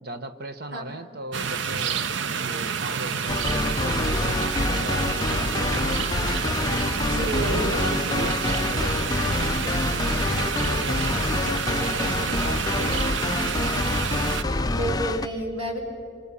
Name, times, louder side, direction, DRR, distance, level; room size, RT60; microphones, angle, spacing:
voice 1, 0.0-2.1 2.4-5.9 7.1-13.5, right 1 dB, 50° right, 10 dB, 1.2 m, -37 dB
sound 1, 1.3-14.4, right 6 dB, 65° right, 0.7 m, -29 dB
sound 2, 3.3-15.3, left 2 dB, 20° left, 0.5 m, -26 dB
voice 2, 7.0-7.8 14.7-15.8, right 2 dB, 85° right, 1 dB, 5.2 m, -30 dB
27.5 x 24.5 x 7.0 m, 2.5 s
head